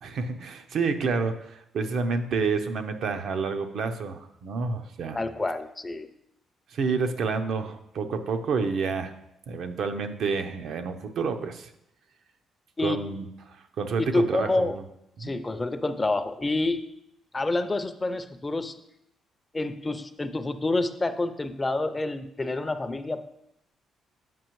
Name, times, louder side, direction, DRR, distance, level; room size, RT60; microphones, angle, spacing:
voice 1, 0.0-5.2 6.7-9.1 9.5-11.7 12.8-14.7 15.2-15.3, right 4 dB, 70° right, 7 dB, 0.6 m, -29 dB
voice 2, 5.1-6.1 12.8-13.0 14.0-14.8 15.2-16.8 17.3-18.8 19.5-23.2, left 2 dB, 20° left, 10 dB, 0.4 m, -28 dB
7.6 x 4.9 x 3.0 m, 0.80 s
cardioid pair, 90°, 0 cm